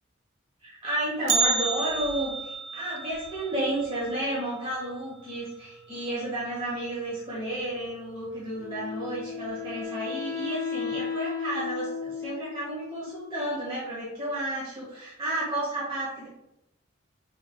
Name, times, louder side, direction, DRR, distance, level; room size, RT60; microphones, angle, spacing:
voice 1, 0.6-16.3, right 1 dB, 25° right, -7 dB, 0.9 m, -32 dB
Bell, 1.3-5.4 5.6-5.7 6.2-6.3 7.1-7.2 8.0-8.3 8.6-8.7, right 5 dB, 70° right, 0.4 m, -31 dB
Wind instrument woodwind instrument, 8.6-13.6, left 6 dB, 25° left, 1.1 m, -35 dB
4.5 x 3.4 x 2.2 m, 0.86 s
head